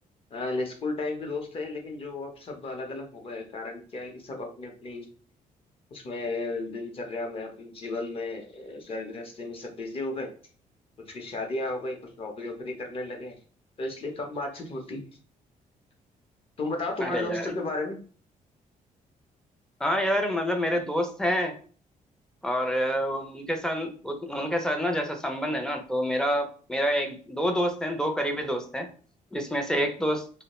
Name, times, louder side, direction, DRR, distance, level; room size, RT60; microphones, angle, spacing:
voice 1, 0.3-5.1 5.9-10.3 11.1-13.4 13.8-15.0 16.6-18.0 29.7-29.9, left 2 dB, 40° left, 2 dB, 0.7 m, -34 dB
voice 2, 17.0-17.5 19.8-21.5 22.4-28.9 29.3-30.2, equal, 5° left, 4 dB, 0.4 m, -27 dB
2.2 x 2.1 x 2.9 m, 0.41 s
cardioid pair, 120°, 14 cm